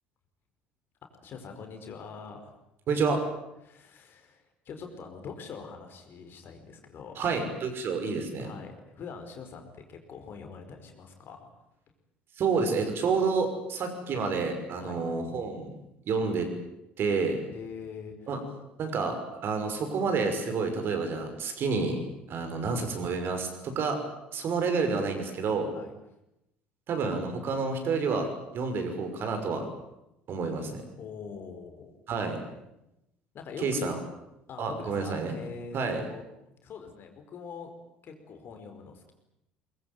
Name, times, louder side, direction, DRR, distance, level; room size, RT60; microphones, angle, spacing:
voice 1, 1.1-2.5 3.6-7.3 8.4-11.5 14.8-15.0 17.5-18.2 25.7-25.9 31.0-31.9 33.3-33.9 34.5-37.7 38.0-39.1, left 5 dB, 45° left, 5 dB, 5.0 m, -43 dB
voice 2, 2.9-3.2 7.2-8.5 12.4-15.7 16.0-16.5 17.0-17.4 18.3-18.4 18.8-19.1 19.4-22.0 22.3-24.0 24.3-25.7 26.9-29.7 30.3-30.8 32.1-32.4 33.6-34.0 34.6-35.3 35.7-36.0, right 4 dB, 45° right, 6 dB, 5.9 m, -29 dB
23.5 x 22.0 x 9.3 m, 0.86 s
figure-of-eight pair, 60°, 5 cm